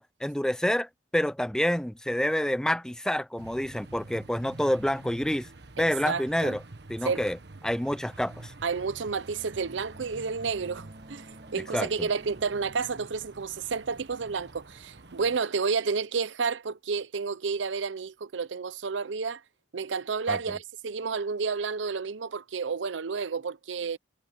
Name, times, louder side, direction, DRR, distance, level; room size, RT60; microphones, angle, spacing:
voice 1, 0.0-5.5 5.8-6.6 6.9-7.4 7.6-8.5 11.7-12.1 20.3-20.4, equal, 5° left, 0.4 m, -28 dB
sound 1, 3.4-15.4, right 2 dB, 65° right, 1.4 m, -48 dB
voice 2, 5.8-6.6 7.0-7.3 8.6-11.3 11.5-19.4 19.7-24.0, right 5 dB, 85° right, 0.6 m, -31 dB
Bowed string instrument, 9.0-14.0, right 1 dB, 45° right, 3.6 m, -53 dB
head